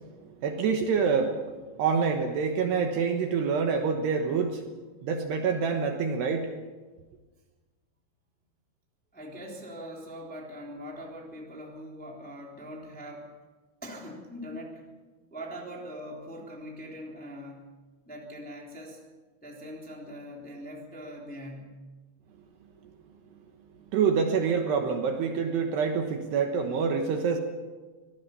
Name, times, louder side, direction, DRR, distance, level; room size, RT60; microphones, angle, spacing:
voice 1, 0.4-1.4 1.8-4.6 5.0-6.5 23.9-27.4, right 6 dB, 65° right, 4 dB, 3.0 m, -26 dB
voice 2, 9.1-13.3 13.8-14.8 15.3-17.7 18.1-19.0 19.4-21.8, equal, ahead, -1 dB, 2.3 m, -42 dB
24.5 x 19.0 x 5.7 m, 1.3 s
omnidirectional pair, 5.8 m